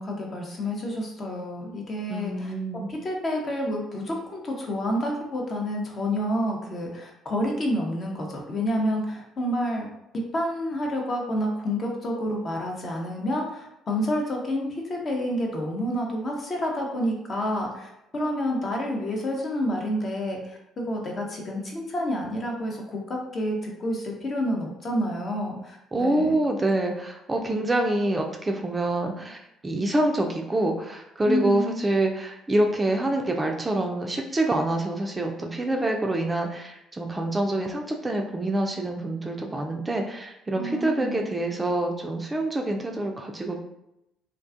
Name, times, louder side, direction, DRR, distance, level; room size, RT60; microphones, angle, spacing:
voice 1, 0.0-2.5 2.9-9.9 10.1-26.4 31.2-31.8 40.6-41.2, equal, 40° left, 1 dB, 0.7 m, -29 dB
voice 2, 2.1-2.9 25.9-29.4 29.6-43.6, right 1 dB, 20° right, 2 dB, 0.4 m, -26 dB
2.4 x 2.2 x 2.5 m, 0.84 s
hypercardioid pair, 50°, 0 cm